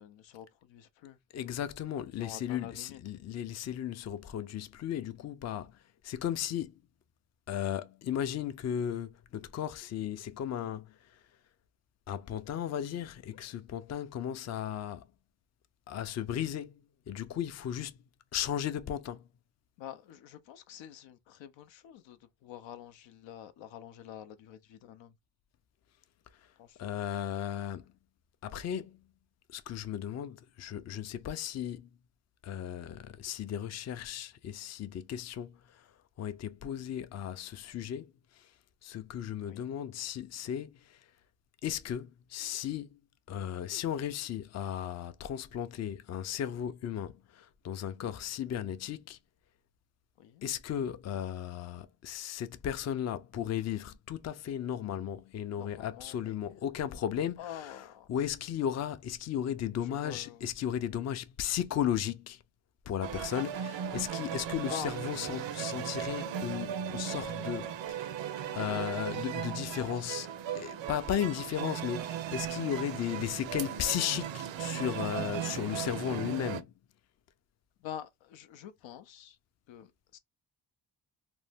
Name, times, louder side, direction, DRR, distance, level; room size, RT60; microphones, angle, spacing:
voice 1, 0.0-1.2 2.2-3.0 19.8-25.1 26.6-27.2 39.4-39.7 50.2-50.4 55.5-56.3 57.4-58.1 59.8-60.5 64.7-64.9 68.5-69.2 69.5-70.1 77.8-79.4 79.7-80.2, left 10 dB, 90° left, 0.5 m, -47 dB
voice 2, 1.3-5.8 6.0-6.7 7.5-11.0 12.1-15.1 15.9-18.0 18.3-19.3 26.8-27.9 28.4-29.0 29.5-31.9 32.4-35.9 36.2-38.5 38.8-41.0 41.6-43.0 43.3-49.2 50.4-62.4 62.9-68.1 68.5-70.3 70.5-76.7, left 10 dB, 40° left, 0.4 m, -35 dB
sound 1, 63.0-76.6, right 9 dB, 80° right, 0.5 m, -37 dB
2.6 x 2.1 x 3.3 m
cardioid pair, 65°, 44 cm